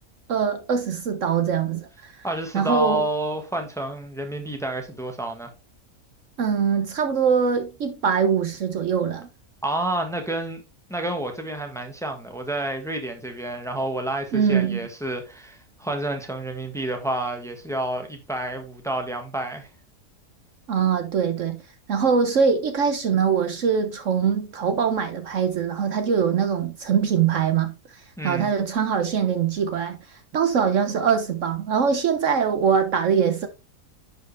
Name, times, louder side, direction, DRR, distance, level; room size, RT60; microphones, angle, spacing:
voice 1, 0.3-2.1 2.5-3.0 6.4-9.3 14.3-14.8 20.7-21.6 21.9-27.7 28.2-33.5, right 6 dB, 60° right, 1.1 m, -22 dB
voice 2, 2.2-5.5 9.6-10.6 10.9-19.7 28.2-28.5, right 1 dB, ahead, 1.4 m, -29 dB
10.5 x 4.9 x 3.3 m
omnidirectional pair, 1.5 m